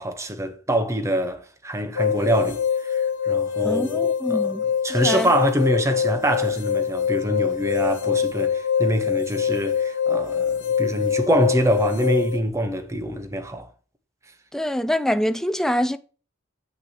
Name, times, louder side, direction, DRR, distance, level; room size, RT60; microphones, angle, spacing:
voice 1, 0.0-4.5 4.8-13.7, right 1 dB, 15° right, 0.9 m, -25 dB
sound 1, 2.0-12.4, left 7 dB, 65° left, 1.1 m, -24 dB
voice 2, 3.6-5.3 14.5-16.0, equal, ahead, 0.4 m, -25 dB
7.8 x 6.0 x 2.9 m
head